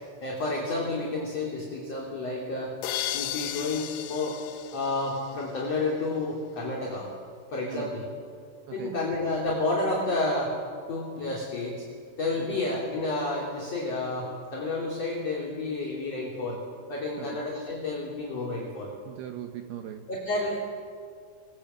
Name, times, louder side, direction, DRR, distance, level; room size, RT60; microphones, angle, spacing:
voice 1, 0.0-2.7 3.1-4.5 4.7-7.1 7.5-8.1 8.7-10.6 10.9-11.8 12.2-16.6 16.9-18.9 20.1-20.7, left 2 dB, 35° left, -3 dB, 3.8 m, -30 dB
sound 1, 2.8-5.7, left 13 dB, 85° left, 3.6 m, -35 dB
voice 2, 8.7-9.0 12.4-12.6 17.2-17.4 19.1-20.1, right 11 dB, 75° right, 6 dB, 2.5 m, -39 dB
28.5 x 21.5 x 8.0 m, 2.2 s
omnidirectional pair, 5.6 m